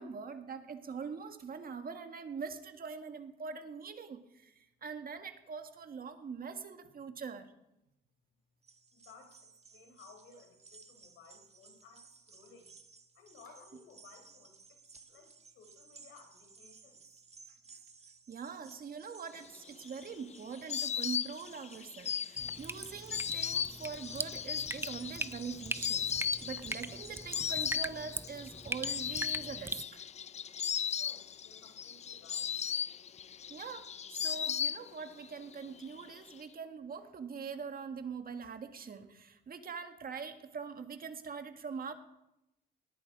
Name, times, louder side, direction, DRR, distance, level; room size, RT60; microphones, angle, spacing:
voice 1, 0.0-7.5 18.3-30.1 33.5-41.9, right 6 dB, 50° right, 7 dB, 1.7 m, -43 dB
sound 1, 8.6-27.7, right 5 dB, 30° right, 1.5 m, -58 dB
voice 2, 8.9-12.7 13.1-14.8 15.1-17.0 30.9-32.5, left 5 dB, 80° left, 4 dB, 4.0 m, -58 dB
Insect, 19.5-35.3 35.5-36.3, left 8 dB, 35° left, 0.4 m, -37 dB
Drip, 22.4-29.8, right 2 dB, 10° right, 0.6 m, -41 dB
19.0 x 10.5 x 4.9 m, 0.89 s
cardioid pair, 90°, 20 cm